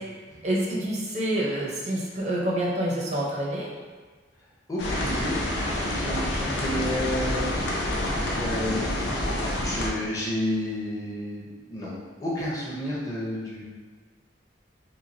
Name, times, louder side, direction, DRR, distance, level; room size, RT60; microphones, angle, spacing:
voice 1, 0.4-3.7, right 1 dB, 35° right, -3 dB, 0.4 m, -27 dB
voice 2, 4.7-5.4 5.8-7.5 8.3-8.9 9.5-11.9 12.2-13.6, left 1 dB, 20° left, -6 dB, 0.5 m, -30 dB
sound 1, 4.8-9.9, left 1 dB, 70° left, 0.5 m, -28 dB
3.0 x 2.7 x 2.6 m, 1.5 s
head